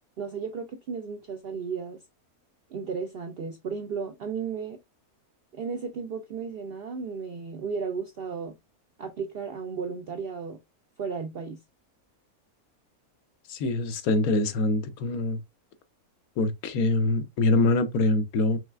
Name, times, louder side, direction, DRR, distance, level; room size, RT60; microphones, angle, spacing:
voice 1, 0.2-2.0 2.7-4.8 5.5-8.5 9.0-10.6 11.0-11.6, right 5 dB, 70° right, 0.5 m, -34 dB
voice 2, 13.5-15.4 16.4-18.6, left 2 dB, 75° left, 1.1 m, -24 dB
4.8 x 3.1 x 2.3 m
omnidirectional pair, 1.6 m